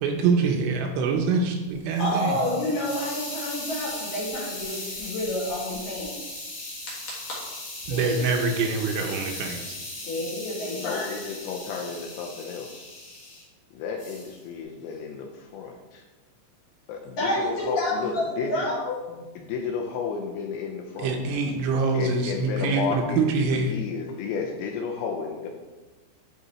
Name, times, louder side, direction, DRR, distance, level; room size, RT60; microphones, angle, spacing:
voice 1, 0.0-2.4 7.9-9.8 21.0-23.7, right 4 dB, 80° right, 2 dB, 2.9 m, -25 dB
Hiss, 1.7-13.4 14.0-14.4, left 2 dB, 25° left, 2.3 m, -38 dB
voice 2, 2.0-6.2 7.3-7.4 7.9-8.2 10.0-11.1 17.2-18.2 18.5-19.0, left 1 dB, 65° left, -6 dB, 2.4 m, -29 dB
voice 3, 10.7-12.9 13.7-16.0 16.9-18.7 19.1-21.2 21.9-23.2 23.5-25.5, left 5 dB, 85° left, 2 dB, 2.8 m, -32 dB
12.0 x 4.0 x 4.2 m, 1.2 s
omnidirectional pair, 5.8 m